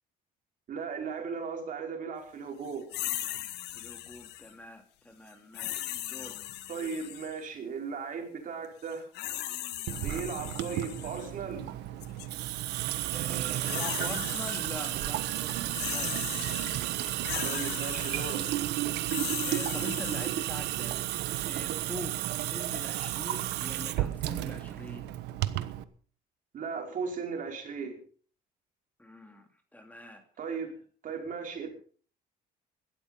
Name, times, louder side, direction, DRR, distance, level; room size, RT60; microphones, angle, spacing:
voice 1, 0.7-2.9 6.7-9.1 10.0-11.7 17.4-18.7 26.5-28.0 30.4-30.7 31.0-31.7, right 5 dB, 50° right, 2 dB, 5.2 m, -37 dB
sound 1, 2.9-4.5 5.5-7.4 8.9-11.3 12.0-12.3 13.3-14.9 15.2-20.3, left 14 dB, 85° left, 1.6 m, -38 dB
voice 2, 3.7-6.5 13.1-16.6 19.4-21.0 21.5-25.1 29.0-30.6, left 1 dB, 10° left, 5 dB, 2.7 m, -44 dB
Water tap faucet / Sink (filling or washing) / Drip, 9.9-25.8, right 14 dB, 85° right, 1.2 m, -32 dB
17.0 x 12.5 x 5.6 m, 0.44 s
cardioid pair, 110°, 17 cm